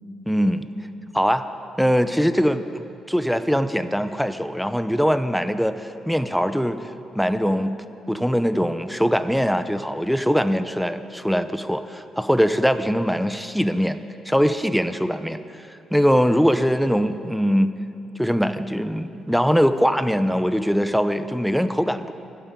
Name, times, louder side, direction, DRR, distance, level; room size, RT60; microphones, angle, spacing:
voice 1, 0.3-0.7 1.1-1.4 1.8-6.8 7.1-7.8 8.1-14.0 14.2-15.4 15.7-17.7 18.2-22.1, equal, ahead, 11 dB, 0.6 m, -22 dB
12.0 x 9.1 x 9.0 m, 2.7 s
cardioid pair, 90°, 0 cm